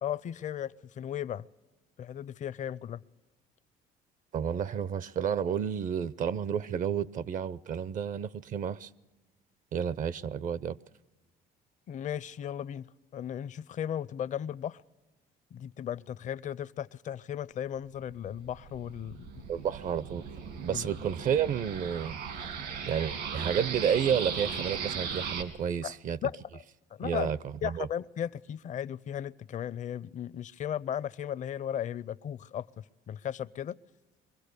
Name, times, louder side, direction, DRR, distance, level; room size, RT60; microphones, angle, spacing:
voice 1, 0.0-1.5 2.0-3.0 11.9-12.9 13.1-14.8 15.5-19.5 20.7-20.9 25.8-25.9 26.2-26.6 27.0-27.3 27.6-33.8, left 10 dB, 45° left, 0.6 m, -36 dB
voice 2, 4.3-8.9 9.7-10.8 19.5-20.2 20.6-22.2 22.9-26.2 27.0-27.9, right 8 dB, 50° right, 0.6 m, -31 dB
sound 1, 18.1-25.4, right 6 dB, 80° right, 2.4 m, -37 dB
24.0 x 16.5 x 6.7 m
cardioid pair, 110°, 17 cm